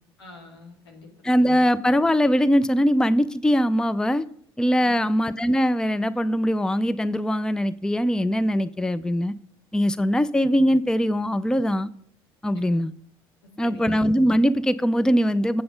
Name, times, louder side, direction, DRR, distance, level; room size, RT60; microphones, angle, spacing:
voice 1, 0.2-1.5 4.8-5.0 12.5-12.7 13.6-14.0, left 2 dB, 90° left, 0 dB, 2.2 m, -45 dB
voice 2, 1.2-4.3 4.6-9.3 9.7-11.9 12.4-12.9 13.6-15.6, equal, 5° left, 16 dB, 0.5 m, -21 dB
7.8 x 7.7 x 5.2 m, 0.65 s
hypercardioid pair, 65°, 13 cm